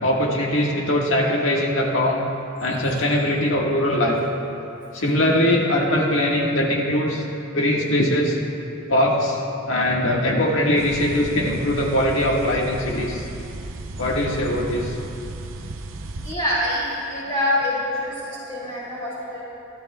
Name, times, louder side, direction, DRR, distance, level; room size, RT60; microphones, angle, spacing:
voice 1, 0.0-2.3 2.6-4.2 4.9-7.2 7.5-8.4 8.9-9.4 9.7-13.3 14.0-14.9, left 1 dB, 75° left, -2 dB, 1.7 m, -21 dB
sound 1, 10.8-16.3, right 2 dB, 80° right, 0.7 m, -35 dB
voice 2, 16.2-19.4, left 1 dB, 30° left, -10 dB, 3.1 m, -25 dB
25.5 x 12.0 x 2.4 m, 2.7 s
head